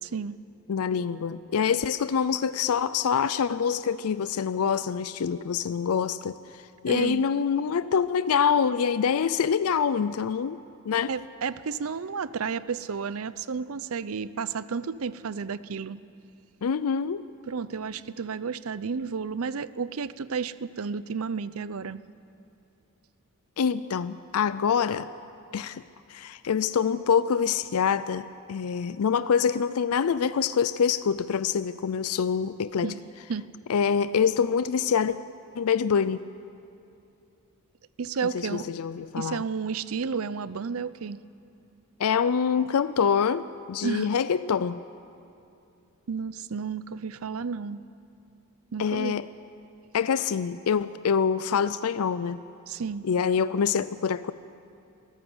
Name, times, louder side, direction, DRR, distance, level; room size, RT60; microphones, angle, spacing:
voice 1, 0.0-0.3 6.9-7.3 11.1-16.0 17.5-22.0 32.8-33.5 38.0-38.7 39.2-41.2 43.8-44.2 46.1-47.8 48.7-49.2 52.7-53.1, right 5 dB, 65° right, 16 dB, 0.6 m, -32 dB
voice 2, 0.7-10.6 10.9-11.1 16.6-17.3 23.6-25.1 25.5-25.8 26.1-32.9 33.7-35.2 35.6-36.2 38.3-39.4 42.0-44.8 48.8-49.3 49.9-52.4 53.0-54.3, left 6 dB, 75° left, 15 dB, 0.4 m, -25 dB
23.0 x 15.0 x 7.9 m, 2.7 s
head